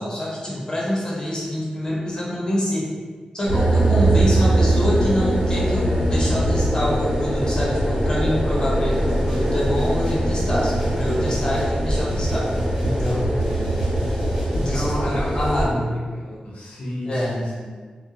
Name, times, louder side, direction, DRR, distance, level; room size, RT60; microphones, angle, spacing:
voice 1, 0.0-2.9 3.3-12.5 12.8-13.3 14.5-15.9 17.0-17.4, left 1 dB, 30° left, -5 dB, 0.6 m, -26 dB
sound 1, 3.5-15.6, right 1 dB, 75° right, 1.1 m, -21 dB
sound 2, 8.9-14.9, equal, 15° right, 0.9 m, -39 dB
voice 2, 13.3-13.7 14.6-17.8, left 1 dB, 70° left, -6 dB, 0.6 m, -31 dB
2.2 x 2.0 x 2.7 m, 1.5 s
wide cardioid pair, 115°, 2 cm